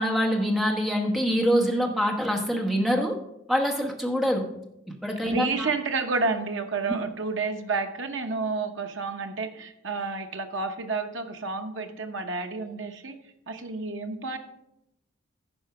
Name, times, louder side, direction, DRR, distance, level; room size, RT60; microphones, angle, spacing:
voice 1, 0.0-3.2 3.5-4.5 4.9-5.7, equal, ahead, 1 dB, 1.1 m, -25 dB
voice 2, 5.2-13.2 13.5-14.4, right 4 dB, 70° right, 5 dB, 0.9 m, -30 dB
11.0 x 4.5 x 5.8 m, 0.84 s
head